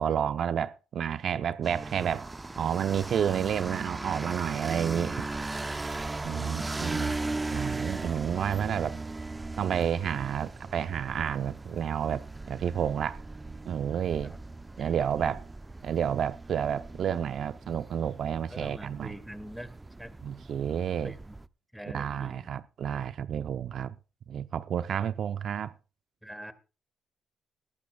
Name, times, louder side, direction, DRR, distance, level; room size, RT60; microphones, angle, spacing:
voice 1, 0.0-2.3 2.6-5.2 6.2-7.2 7.5-9.0 9.6-13.2 13.6-14.4 14.8-15.4 15.8-19.1 20.2-21.1 21.9-23.9 24.3-25.7, right 8 dB, 65° right, 0.5 m, -30 dB
sound 1, 1.6-21.5, right 2 dB, 20° right, 0.6 m, -38 dB
voice 2, 6.3-6.9 14.2-14.4 14.8-15.3 18.5-20.1 21.0-21.4 21.7-22.5 26.2-26.5, equal, 5° right, 2.2 m, -44 dB
21.0 x 12.0 x 2.2 m
supercardioid pair, 70°, 0 cm